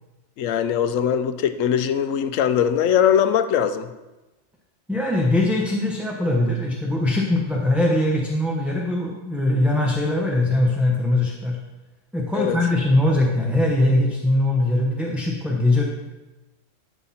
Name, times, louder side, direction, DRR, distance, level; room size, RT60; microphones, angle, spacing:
voice 1, 0.4-3.9 12.3-12.6, left 8 dB, 75° left, 11 dB, 1.0 m, -21 dB
voice 2, 4.9-11.6 12.1-15.8, left 1 dB, ahead, -3 dB, 0.8 m, -21 dB
11.5 x 6.0 x 4.2 m, 1.1 s
omnidirectional pair, 1.4 m